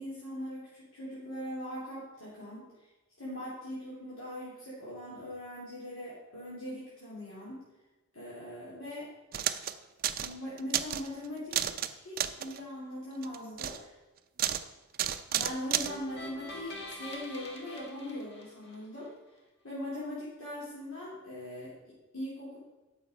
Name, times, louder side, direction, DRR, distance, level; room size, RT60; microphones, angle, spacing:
voice 1, 0.0-2.9 3.2-7.6 8.1-9.1 10.2-11.6 11.8-14.0 15.3-19.1 19.6-22.6, left 1 dB, 75° left, -8 dB, 2.7 m, -41 dB
sound 1, 9.3-9.7 10.0-10.3 10.6-11.1 11.5-11.9 12.2-12.6 13.2-13.8 14.4-14.6 14.9-15.9, right 11 dB, 45° right, 0.4 m, -31 dB
sound 2, 15.8-19.1, left 2 dB, 55° left, 1.5 m, -45 dB
9.1 x 6.4 x 5.1 m, 1.1 s
head